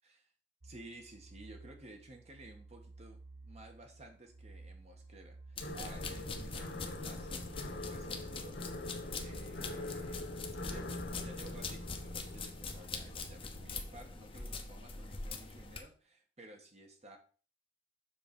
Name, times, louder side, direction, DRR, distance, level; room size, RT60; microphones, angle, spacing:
voice 1, 0.6-10.3 10.7-17.2, right 2 dB, 40° right, 3 dB, 1.5 m, -55 dB
sound 1, 0.6-13.8, right 3 dB, 75° right, 0.9 m, -55 dB
sound 2, 5.6-14.4, left 2 dB, 90° left, 1.2 m, -44 dB
sound 3, 5.6-15.8, left 3 dB, 30° left, 0.9 m, -43 dB
7.1 x 3.7 x 5.3 m, 0.39 s
head